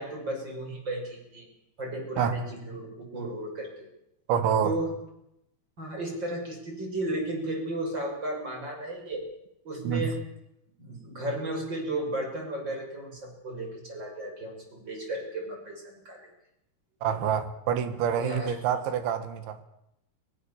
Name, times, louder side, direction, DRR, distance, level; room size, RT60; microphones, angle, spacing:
voice 1, 0.0-1.5 1.8-3.7 4.6-4.9 5.8-9.2 9.6-10.2 10.8-16.3 18.2-18.5, right 1 dB, 25° right, 2 dB, 6.6 m, -34 dB
voice 2, 4.3-4.7 9.8-10.1 17.0-19.6, right 8 dB, 85° right, 10 dB, 4.0 m, -27 dB
23.0 x 21.5 x 7.2 m, 0.82 s
omnidirectional pair, 5.2 m